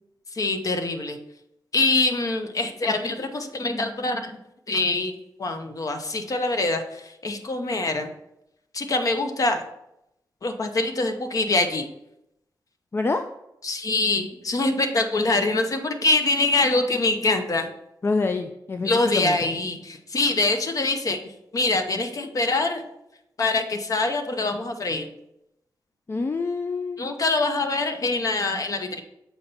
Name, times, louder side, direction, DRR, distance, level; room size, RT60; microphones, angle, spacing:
voice 1, 0.3-1.2 1.7-4.4 4.7-8.1 8.7-9.7 10.4-11.9 13.6-17.7 18.8-22.8 23.4-25.1 27.0-29.0, left 2 dB, 50° left, 6 dB, 0.8 m, -24 dB
voice 2, 12.9-13.2 18.0-19.4 26.1-27.0, left 3 dB, 35° left, 7 dB, 0.4 m, -26 dB
7.1 x 4.4 x 4.1 m, 0.84 s
cardioid pair, 90°, 8 cm